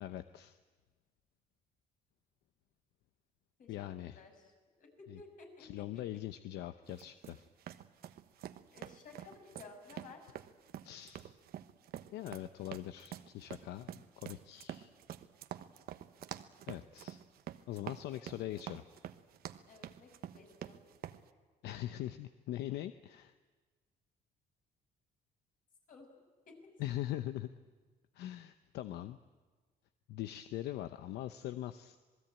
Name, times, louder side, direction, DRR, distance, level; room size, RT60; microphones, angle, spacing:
voice 1, 0.0-0.6 3.7-4.2 5.1-5.2 5.6-7.5 10.8-11.3 12.1-14.9 16.7-17.2 17.7-18.8 21.6-23.3 26.8-27.5 28.1-29.2 30.1-32.0, left 13 dB, 80° left, 11 dB, 0.8 m, -42 dB
voice 2, 3.6-4.5 4.8-5.7 8.7-10.3 19.7-20.8 25.9-26.1 26.6-26.7, left 4 dB, 55° left, 3 dB, 6.5 m, -55 dB
sound 1, 6.9-21.2, right 11 dB, 65° right, 1.1 m, -47 dB
27.0 x 19.5 x 8.9 m, 1.4 s
cardioid pair, 110°, 17 cm